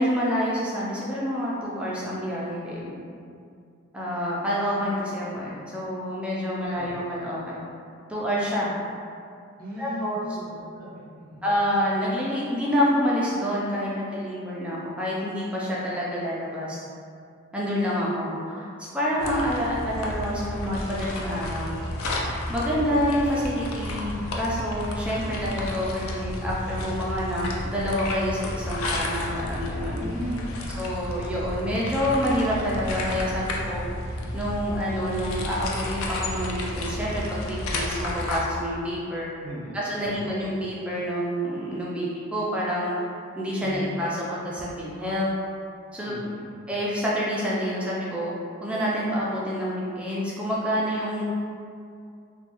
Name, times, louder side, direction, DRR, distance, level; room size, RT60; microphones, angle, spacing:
voice 1, 0.0-2.9 3.9-7.6 8.1-8.7 9.8-10.2 11.4-16.8 17.5-21.8 22.5-30.0 30.8-33.8 34.3-39.3 39.7-43.0 43.4-45.3 45.9-46.1 46.7-48.3 48.6-51.2, equal, 5° right, -7 dB, 0.4 m, -27 dB
voice 2, 9.6-11.5 25.2-25.5 29.9-30.6 39.4-40.4 43.6-44.0 46.1-46.5, equal, 40° right, -6 dB, 0.7 m, -37 dB
sound 1, 19.2-38.4, left 1 dB, 65° left, 0.4 m, -32 dB
3.0 x 2.2 x 2.9 m, 2.4 s
head